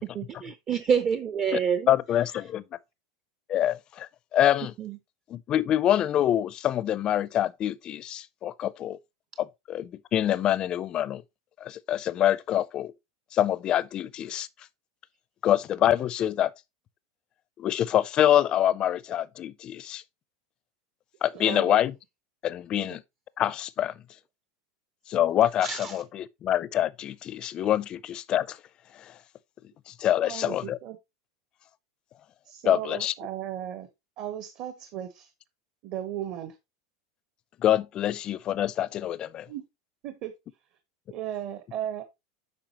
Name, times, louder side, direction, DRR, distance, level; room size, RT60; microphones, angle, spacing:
voice 1, 0.0-1.9 4.8-5.0 25.6-25.9, right 7 dB, 25° right, 0.5 m, -27 dB
voice 2, 1.9-2.6 3.5-4.7 5.3-9.0 9.4-11.2 11.6-12.9 13.3-14.5 15.4-16.5 17.6-20.0 21.2-22.0 22.4-23.0 23.4-23.9 25.1-28.6 28.9-29.1 29.9-30.8 32.6-33.1 37.6-39.5, left 11 dB, 30° left, 0.4 m, -26 dB
voice 3, 21.3-21.8 22.8-22.9 30.2-31.0 32.5-33.9 34.2-35.3 35.8-36.5 39.5-39.6 40.0-40.3 41.1-42.0, right 11 dB, 45° right, 1.0 m, -35 dB
8.7 x 5.6 x 2.9 m
supercardioid pair, 150°, 3 cm